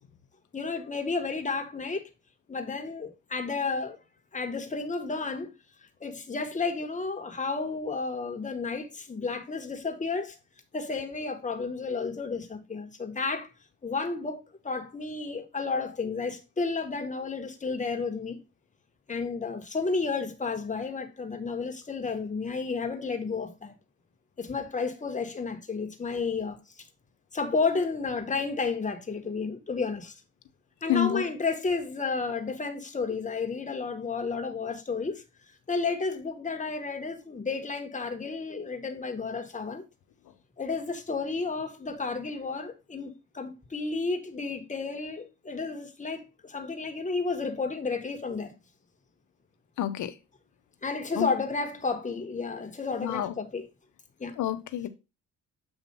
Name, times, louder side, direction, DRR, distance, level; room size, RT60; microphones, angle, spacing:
voice 1, 0.5-2.0 2.5-4.0 4.3-5.5 6.0-10.4 10.7-13.5 13.8-18.4 19.1-23.7 24.4-26.6 27.3-30.1 30.8-35.2 35.7-39.8 40.6-48.5 50.8-53.6 54.2-54.4, left 4 dB, 25° left, 1.4 m, -32 dB
voice 2, 30.9-31.2 49.8-50.2 51.1-51.3 53.0-53.3 54.4-54.9, left 11 dB, 75° left, 0.9 m, -28 dB
7.9 x 2.8 x 5.4 m
cardioid pair, 90°, 30 cm